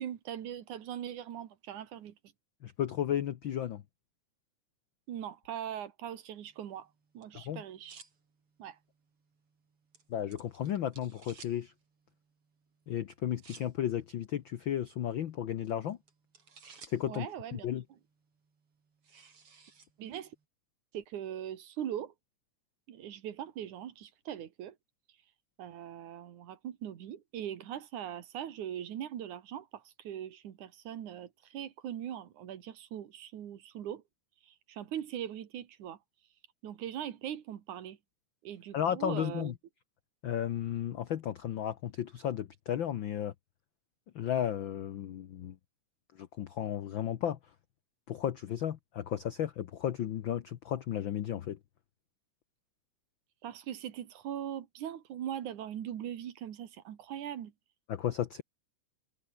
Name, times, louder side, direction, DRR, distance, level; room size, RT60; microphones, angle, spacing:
voice 1, 0.0-2.1 5.1-6.9 7.1-8.0 8.6-8.8 17.1-17.7 20.0-20.3 20.9-22.1 22.9-24.7 25.6-34.0 34.5-36.0 36.6-38.0 38.4-39.5 53.4-57.5, right 10 dB, 75° right, 3.1 m, -40 dB
voice 2, 2.6-3.8 7.4-7.6 10.1-11.7 12.9-16.0 16.9-17.8 38.7-39.5 40.2-43.3 44.1-45.5 46.2-47.4 48.1-51.6 57.9-58.4, left 10 dB, 80° left, 1.0 m, -34 dB
sound 1, 6.4-20.4, right 5 dB, 45° right, 4.4 m, -60 dB
omnidirectional pair, 3.5 m